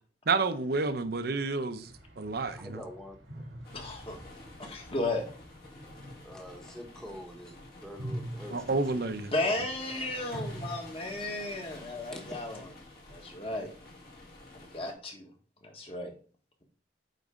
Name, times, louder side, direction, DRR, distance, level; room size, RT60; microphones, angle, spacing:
voice 1, 0.3-2.8 8.5-9.3, right 3 dB, 60° right, 0.7 m, -30 dB
sound 1, 1.8-7.4 7.8-10.8, right 1 dB, 90° right, 1.7 m, -45 dB
voice 2, 2.5-3.4 4.6-4.7 6.2-7.5 7.8-8.8 10.3-10.5 12.1-12.4, equal, 5° left, 1.1 m, -45 dB
sound 2, 3.6-14.9, left 2 dB, 60° left, 2.3 m, -50 dB
voice 3, 3.7-4.2 4.6-5.2 9.3-12.7 13.1-13.7 14.7-15.3 15.6-16.1, left 2 dB, 30° left, 1.5 m, -34 dB
9.1 x 4.1 x 3.6 m
head